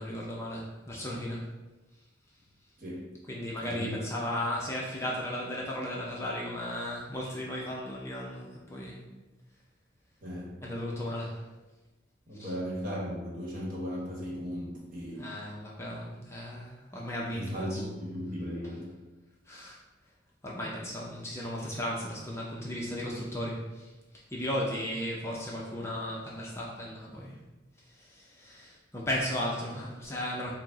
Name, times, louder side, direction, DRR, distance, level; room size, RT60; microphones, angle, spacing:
voice 1, 0.0-1.5 3.3-9.0 10.6-11.4 12.4-12.5 15.2-17.8 19.5-19.8 20.4-23.9 24.3-27.4 28.0-30.5, left 1 dB, 15° left, -4 dB, 0.5 m, -35 dB
voice 2, 2.8-3.1 3.6-4.0 10.2-10.6 12.3-15.3 17.3-19.0, equal, 45° right, -4 dB, 1.1 m, -36 dB
4.7 x 2.0 x 3.8 m, 1.1 s
head